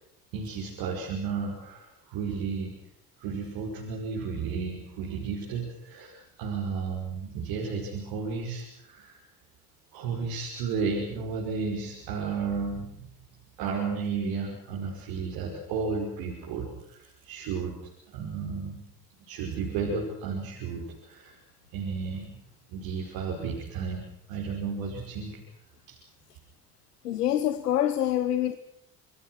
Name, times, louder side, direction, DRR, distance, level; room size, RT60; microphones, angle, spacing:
voice 1, 0.3-2.8 3.2-9.2 9.9-13.1 13.6-17.8 18.1-18.8 19.3-21.4 21.7-22.4 22.7-24.0 24.3-25.4 25.9-26.0, right 5 dB, 70° right, -1 dB, 5.4 m, -33 dB
voice 2, 27.0-28.6, left 11 dB, 90° left, 12 dB, 1.1 m, -26 dB
28.0 x 23.5 x 6.2 m, 0.72 s
hypercardioid pair, 55°, 46 cm